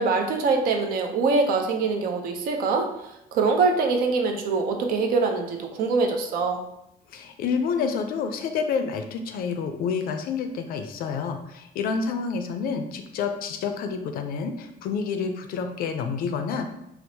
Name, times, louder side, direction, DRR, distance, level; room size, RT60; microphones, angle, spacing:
voice 1, 0.0-6.6, right 4 dB, 65° right, 4 dB, 0.5 m, -24 dB
voice 2, 7.1-16.7, left 5 dB, 60° left, 6 dB, 0.4 m, -28 dB
4.4 x 2.0 x 2.7 m, 0.82 s
cardioid pair, 150°, 17 cm